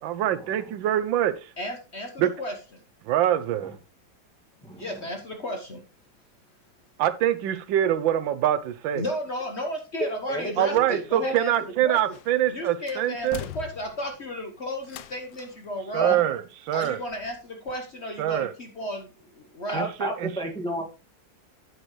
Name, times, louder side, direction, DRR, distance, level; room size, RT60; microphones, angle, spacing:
voice 1, 0.0-1.5 2.2-2.3 3.0-3.8 7.0-9.0 10.6-13.4 15.9-17.0 18.2-18.5 19.7-20.3, right 11 dB, 85° right, 1.4 m, -24 dB
voice 2, 1.6-2.8 4.7-5.8 8.9-11.5 11.8-12.2 12.5-16.2 16.7-19.9, left 1 dB, 40° left, 1.2 m, -34 dB
voice 3, 10.3-11.3 16.0-16.1 19.7-20.9, right 1 dB, 5° left, 1.8 m, -31 dB
sound 1, 12.1-12.5 12.9-14.2 14.8-15.6 16.7-17.4 17.7-17.8, left 12 dB, 80° left, 1.3 m, -42 dB
9.2 x 7.7 x 3.1 m
omnidirectional pair, 2.0 m